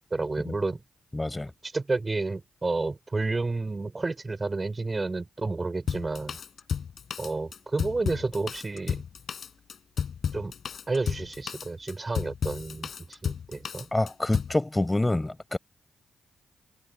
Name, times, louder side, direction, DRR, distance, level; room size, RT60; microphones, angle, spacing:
voice 1, 0.1-0.8 1.6-6.4 7.2-9.0 10.3-10.5 10.9-13.9, right 3 dB, 35° right, 5.0 m, -30 dB
voice 2, 1.1-1.5 13.9-15.6, left 2 dB, 20° left, 6.9 m, -27 dB
Drum kit, 5.9-14.6, left 7 dB, 65° left, 5.5 m, -33 dB
hypercardioid pair, 40°, 0 cm